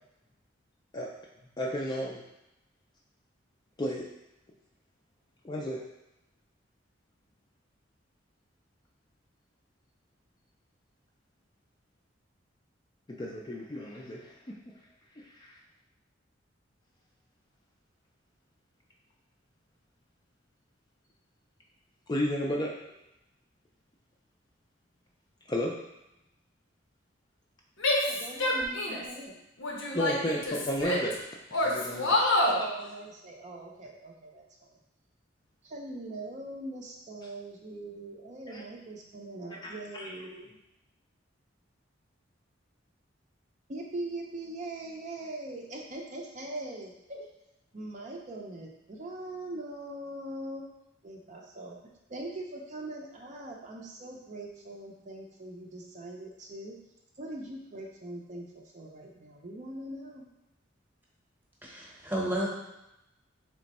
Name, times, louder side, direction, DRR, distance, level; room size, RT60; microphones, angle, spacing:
voice 1, 1.6-2.2 3.8-4.1 5.4-5.8 13.2-14.7 15.1-15.6 22.1-22.8 25.5-25.8 29.9-31.2 31.5-32.2 38.5-38.6 39.5-40.1, equal, 20° left, -1 dB, 0.4 m, -33 dB
Female speech woman speaking / Yell, 27.8-29.1 29.6-31.1 31.5-32.6, left 1 dB, 80° left, 0.9 m, -27 dB
voice 2, 28.0-29.3 32.4-34.7 35.6-40.6 43.7-47.3 47.7-50.6 51.0-51.8 52.1-56.8 57.2-60.3, right 2 dB, 40° right, -1 dB, 0.5 m, -41 dB
voice 3, 61.6-62.5, right 1 dB, 10° right, -4 dB, 0.9 m, -31 dB
3.4 x 3.1 x 4.1 m, 0.89 s
head